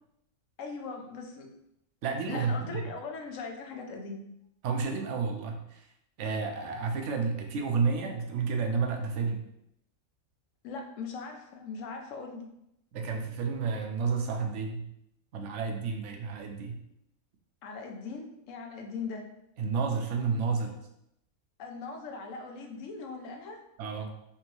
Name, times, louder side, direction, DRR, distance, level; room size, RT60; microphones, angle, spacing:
voice 1, 0.6-1.5 2.3-4.2 10.6-12.5 17.6-19.2 21.6-23.6, left 4 dB, 75° left, 3 dB, 1.0 m, -40 dB
voice 2, 2.0-2.8 4.6-5.9 6.2-9.4 12.9-14.8 15.3-16.8 19.6-20.8 23.8-24.1, right 5 dB, 70° right, 4 dB, 0.9 m, -31 dB
3.5 x 3.0 x 3.0 m, 0.79 s
omnidirectional pair, 1.4 m